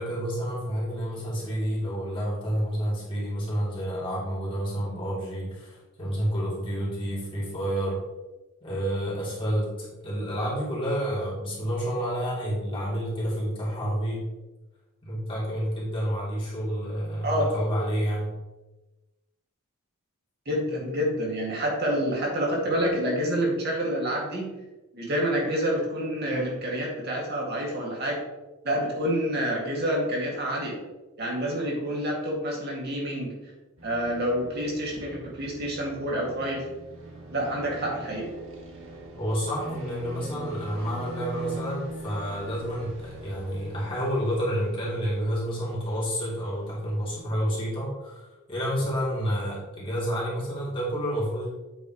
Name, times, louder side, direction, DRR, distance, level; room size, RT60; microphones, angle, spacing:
voice 1, 0.0-8.0 8.6-14.2 15.0-18.3 39.2-51.5, equal, 25° left, -7 dB, 3.0 m, -29 dB
voice 2, 20.5-24.6 24.9-28.3 28.6-30.8 31.2-33.3 33.8-36.7 37.3-38.4, equal, 50° right, -2 dB, 2.2 m, -28 dB
sound 1, 33.8-47.2, right 2 dB, 65° right, 2.0 m, -43 dB
8.6 x 7.1 x 3.1 m, 1.1 s
head